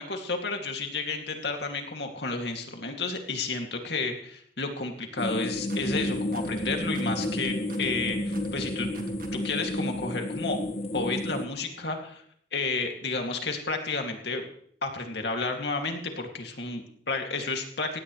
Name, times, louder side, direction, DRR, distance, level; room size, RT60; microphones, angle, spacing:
voice 1, 0.0-8.9 9.4-10.6 10.9-12.2 12.5-14.4 14.8-18.0, left 3 dB, 70° left, 3 dB, 2.4 m, -31 dB
sound 1, 5.2-11.5, left 1 dB, 35° left, 1.1 m, -31 dB
sound 2, 5.6-9.7, right 1 dB, 50° right, 1.9 m, -45 dB
17.5 x 16.5 x 3.2 m, 0.63 s
head